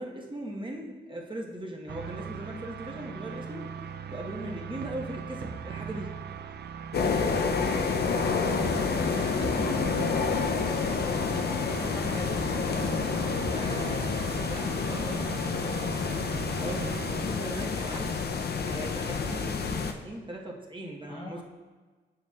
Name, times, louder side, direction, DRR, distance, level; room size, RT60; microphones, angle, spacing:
voice 1, 0.0-6.2 13.5-15.3 16.5-18.2 18.7-21.4, right 1 dB, 25° right, -1 dB, 1.1 m, -39 dB
sound 1, 1.9-17.5, right 6 dB, 55° right, 0.4 m, -39 dB
sound 2, 6.9-19.9, left 5 dB, 55° left, 0.5 m, -29 dB
voice 2, 7.6-12.4 16.6-16.8 17.2-17.4 21.1-21.4, left 2 dB, 25° left, 0 dB, 0.8 m, -43 dB
6.8 x 6.7 x 2.3 m, 1.4 s
cardioid pair, 50°, 20 cm